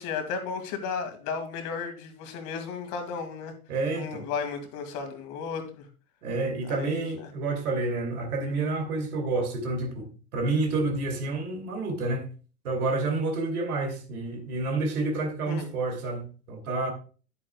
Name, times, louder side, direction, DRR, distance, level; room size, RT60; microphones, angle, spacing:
voice 1, 0.0-3.5 3.9-5.9 6.6-7.3 15.5-15.7, left 5 dB, 45° left, 2.2 m, -34 dB
voice 2, 3.7-4.3 6.2-12.3 12.6-16.9, right 3 dB, 70° right, 2.7 m, -29 dB
10.5 x 8.3 x 2.3 m
hypercardioid pair, 105°, 45 cm